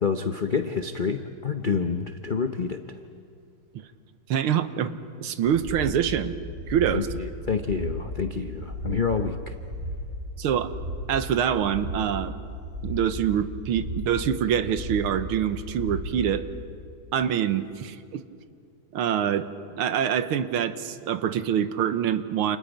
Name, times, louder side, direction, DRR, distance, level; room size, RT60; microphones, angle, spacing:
voice 1, 0.0-2.8 6.9-9.5, left 5 dB, 60° left, 6 dB, 0.5 m, -28 dB
voice 2, 4.3-6.4 6.7-7.1 10.4-10.7 11.1-12.3 12.8-16.5 17.1-18.2 18.9-19.5 19.8-22.6, right 9 dB, 85° right, 11 dB, 1.9 m, -25 dB
sound 1, 5.4-6.0 6.4-7.0 7.4-8.0 8.4-9.0 9.4-10.0 10.5-11.0 11.5-12.1 12.5-13.1 13.5-14.1 14.5-15.1 15.5-16.1 16.5-16.6, equal, 40° right, 6.2 m, -35 dB
29.5 x 29.0 x 5.3 m, 2.4 s
omnidirectional pair, 2.3 m